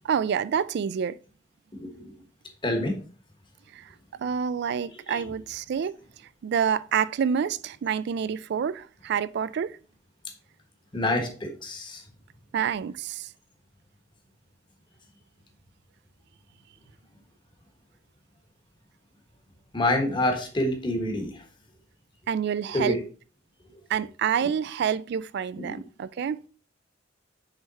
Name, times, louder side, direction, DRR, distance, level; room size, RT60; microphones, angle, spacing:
voice 1, 0.0-1.2 3.7-3.9 4.2-5.9 6.4-9.8 12.5-13.3 22.3-23.0 23.9-26.4, right 7 dB, 55° right, 0.3 m, -27 dB
voice 2, 1.7-2.1 2.6-3.0 5.1-5.3 10.9-12.0 19.7-21.4 22.7-23.0 24.4-24.5 25.6-25.7, left 1 dB, 25° left, 1.2 m, -27 dB
6.5 x 3.5 x 4.1 m
head